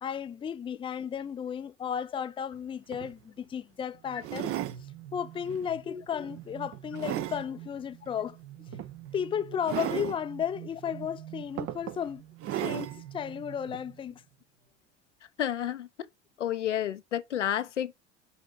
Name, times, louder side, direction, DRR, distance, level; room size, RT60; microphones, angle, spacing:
voice 1, 0.0-4.5 5.1-8.4 9.1-12.2 12.5-14.2, left 8 dB, 15° left, 0.4 m, -34 dB
sound 1, 2.5-2.6 2.9-3.1 4.2-4.8 5.5-5.7 6.2-7.4 8.7-8.9 9.6-10.2 11.0-11.1 11.6-12.0 12.4-13.0 13.7-13.8, right 12 dB, 40° right, 0.7 m, -34 dB
sound 2, 3.9-14.4, right 12 dB, 75° right, 1.3 m, -47 dB
voice 2, 15.4-15.9 16.4-18.0, left 10 dB, 90° left, 0.6 m, -30 dB
6.3 x 5.8 x 3.9 m
hypercardioid pair, 75°, 35 cm